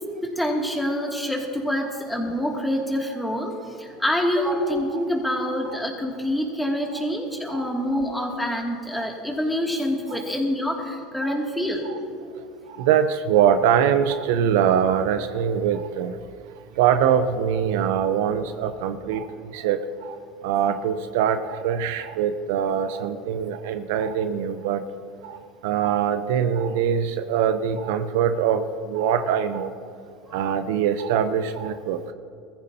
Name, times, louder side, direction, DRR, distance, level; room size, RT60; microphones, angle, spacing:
voice 1, 0.2-11.9 30.3-30.4, equal, 5° left, 0 dB, 2.5 m, -26 dB
voice 2, 12.8-16.2 16.8-19.3 19.5-20.2 20.4-24.8 25.2-25.4 25.6-29.7 30.3-32.0, right 8 dB, 75° right, 10 dB, 0.8 m, -23 dB
21.5 x 14.5 x 2.9 m, 2.3 s
supercardioid pair, 105°, 0 cm